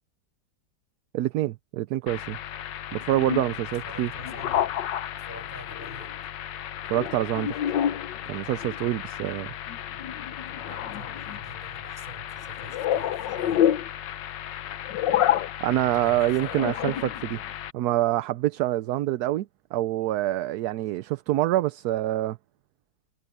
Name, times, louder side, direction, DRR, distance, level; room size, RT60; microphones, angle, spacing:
voice 1, 1.1-2.4 2.9-4.1 6.9-7.6 8.3-9.5 15.6-17.4 17.7-22.4, right 14 dB, 70° right, 1.0 m, -26 dB
sound 1, 2.1-17.7, left 11 dB, 80° left, 1.5 m, -30 dB
voice 2, 3.7-4.7 5.3-6.2 9.9-10.0 10.5-13.8 15.9-16.6, right 1 dB, 25° right, 6.7 m, -46 dB
omnidirectional pair, 1.9 m